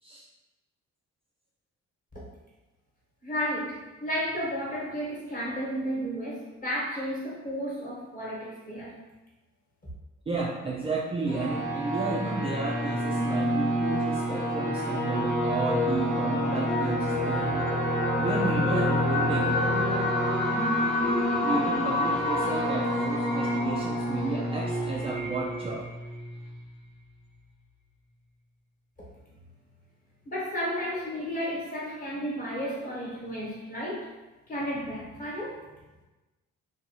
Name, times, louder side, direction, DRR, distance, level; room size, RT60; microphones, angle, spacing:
voice 1, 3.2-9.0 30.2-34.1 34.5-35.7, equal, 25° left, -5 dB, 1.1 m, -33 dB
voice 2, 10.3-17.7 18.2-19.7 21.4-25.8, right 3 dB, 20° right, -4 dB, 0.3 m, -32 dB
sound 1, 11.3-26.6, left 1 dB, 80° left, 1.2 m, -27 dB
2.6 x 2.3 x 2.8 m, 1.1 s
cardioid pair, 90°, 30 cm